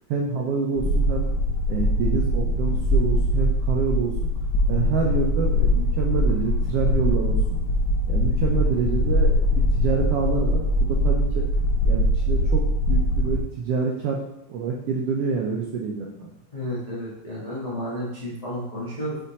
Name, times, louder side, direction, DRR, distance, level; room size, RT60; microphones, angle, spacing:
voice 1, 0.1-1.3 1.7-4.3 4.7-7.6 8.1-9.5 9.8-11.4 11.8-14.2 14.5-16.3, right 5 dB, 80° right, -1 dB, 1.3 m, -27 dB
sound 1, 0.8-13.4, left 1 dB, 90° left, 2.2 m, -22 dB
voice 2, 16.5-19.2, equal, 55° left, -7 dB, 0.4 m, -31 dB
6.8 x 3.4 x 4.1 m, 0.88 s
omnidirectional pair, 3.4 m